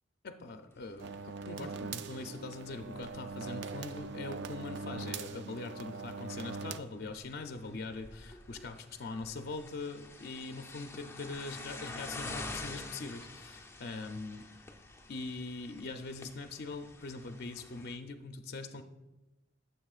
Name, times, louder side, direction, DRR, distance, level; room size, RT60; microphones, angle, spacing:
voice 1, 0.2-14.5 15.1-18.8, left 3 dB, 55° left, 6 dB, 0.5 m, -42 dB
sound 1, 0.7-18.0, left 3 dB, 15° left, 0.6 m, -49 dB
sound 2, 1.0-6.8, right 4 dB, 65° right, 0.4 m, -41 dB
12.5 x 6.8 x 2.4 m, 1.0 s
head